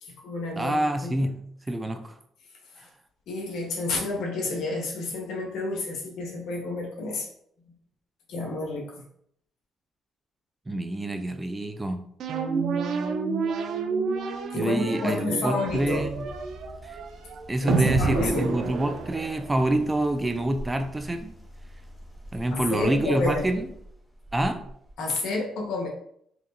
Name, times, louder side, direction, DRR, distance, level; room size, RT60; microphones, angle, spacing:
voice 1, 0.0-0.7 1.0-1.3 2.7-2.9 3.3-7.3 8.3-8.9 14.5-16.1 17.6-18.6 22.5-23.4 25.0-25.9, left 2 dB, 75° left, 1.2 m, -30 dB
voice 2, 0.6-2.2 10.7-12.1 14.5-16.3 16.8-17.0 17.5-21.3 22.3-23.7 24.3-24.6, right 1 dB, 15° right, 0.4 m, -27 dB
sound 1, 12.2-19.7, right 5 dB, 70° right, 0.5 m, -29 dB
sound 2, 15.7-24.9, equal, 5° left, 0.8 m, -45 dB
4.6 x 2.9 x 2.6 m
cardioid pair, 105°, 0 cm